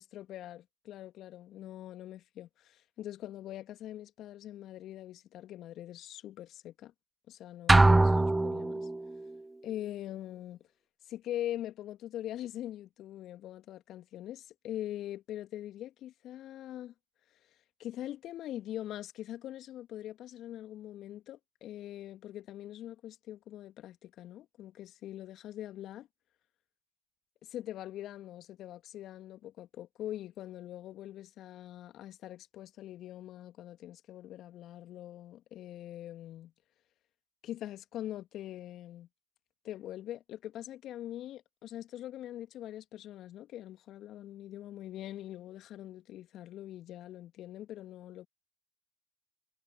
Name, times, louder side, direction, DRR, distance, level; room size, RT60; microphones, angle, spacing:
voice 1, 0.0-6.9 7.3-8.9 9.6-10.6 11.1-16.9 17.8-26.1 27.4-36.5 37.4-39.1 39.6-48.3, left 12 dB, 55° left, 2.3 m, -43 dB
sound 1, 7.7-9.2, right 2 dB, 15° right, 0.4 m, -22 dB
hypercardioid pair, 65°, 0 cm